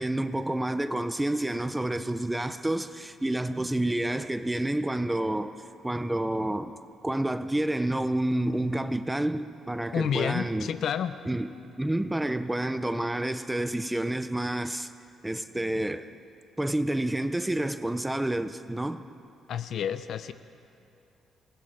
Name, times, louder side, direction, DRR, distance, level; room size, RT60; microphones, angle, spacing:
voice 1, 0.0-5.5 5.8-6.7 7.0-10.7 11.3-11.5 11.8-14.9 15.2-16.1 16.6-19.0, right 1 dB, 5° right, 0.5 m, -29 dB
voice 2, 9.9-11.2 19.5-20.3, left 8 dB, 55° left, 0.7 m, -29 dB
27.5 x 19.5 x 5.1 m
cardioid pair, 175°, 0 cm